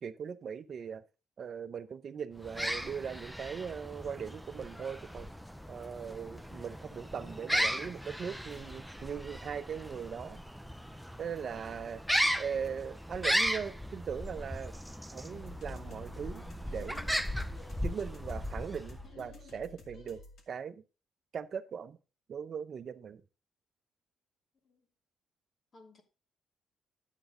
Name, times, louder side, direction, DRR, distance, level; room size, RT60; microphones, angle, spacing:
voice 1, 0.0-1.0 1.4-5.3 5.7-10.4 11.2-12.0 12.4-14.7 15.1-16.5 16.7-17.0 17.8-20.2 20.5-20.8 21.3-22.0 22.3-23.2, right 7 dB, 55° right, 0.7 m, -39 dB
sound 1, 2.4-19.1, equal, ahead, 0.6 m, -36 dB
sound 2, 15.3-20.4, left 3 dB, 65° left, 2.3 m, -52 dB
voice 2, 24.6-24.9 25.7-26.0, left 3 dB, 40° left, 2.5 m, -59 dB
9.9 x 8.3 x 3.8 m
cardioid pair, 90°, 0 cm